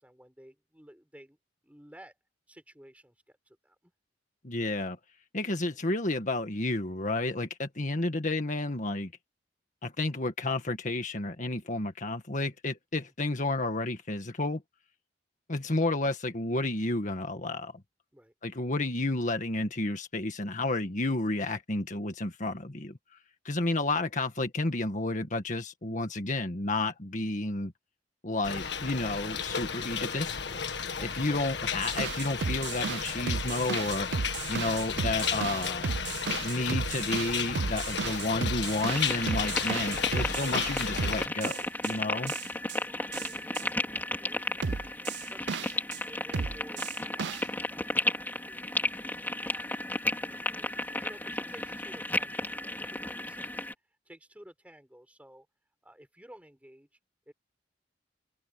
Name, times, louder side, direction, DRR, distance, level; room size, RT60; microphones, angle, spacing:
voice 1, 0.0-1.4 1.6-2.2 2.5-3.9 18.1-18.3 31.0-31.5 42.1-42.3 42.8-47.4 47.7-49.6 50.2-55.5 55.8-56.9 57.3-57.4, equal, 10° right, 6.9 m, -54 dB
voice 2, 4.4-5.0 5.3-9.1 9.8-14.6 15.5-17.7 18.4-22.9 23.5-27.7 28.2-30.4 31.1-34.1 34.5-35.9 36.4-41.6 41.8-42.3, left 2 dB, 45° left, 1.8 m, -31 dB
sound 1, 28.4-41.3, left 6 dB, 70° left, 1.7 m, -33 dB
sound 2, 31.8-41.9 42.3-42.8 43.1-43.6 44.6-46.0 46.3-47.4, right 5 dB, 70° right, 0.6 m, -34 dB
sound 3, 38.9-53.7, left 2 dB, 10° left, 3.7 m, -34 dB
head